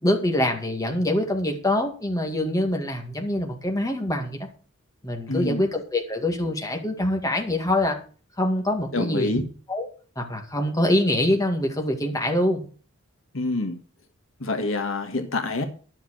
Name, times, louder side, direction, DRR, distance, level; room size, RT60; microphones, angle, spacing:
voice 1, 0.0-4.4 5.0-8.0 8.4-9.4 9.7-9.9 10.2-12.6, left 1 dB, 15° left, 3 dB, 2.1 m, -24 dB
voice 2, 5.3-5.7 8.9-9.4 13.3-13.8 14.4-15.7, left 2 dB, 65° left, 7 dB, 1.6 m, -26 dB
11.5 x 7.5 x 6.4 m, 0.39 s
head